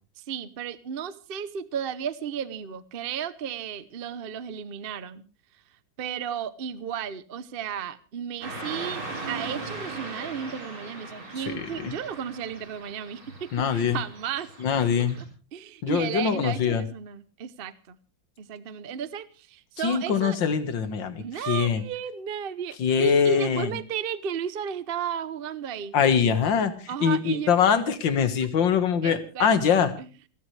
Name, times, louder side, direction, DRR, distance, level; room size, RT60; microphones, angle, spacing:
voice 1, 0.2-5.2 6.0-14.5 15.5-18.0 18.4-20.4 21.2-25.9 26.9-27.5 29.0-30.1, right 8 dB, 55° right, 15 dB, 0.6 m, -34 dB
Car passing by / Traffic noise roadway noise, 8.4-15.2, right 3 dB, 85° right, 5.2 m, -39 dB
voice 2, 11.5-12.0 13.5-14.0 14.6-15.2 15.8-16.8 19.8-21.8 22.8-23.8 25.9-29.9, left 7 dB, 65° left, 10 dB, 2.2 m, -23 dB
28.5 x 12.5 x 3.3 m, 0.35 s
omnidirectional pair, 2.2 m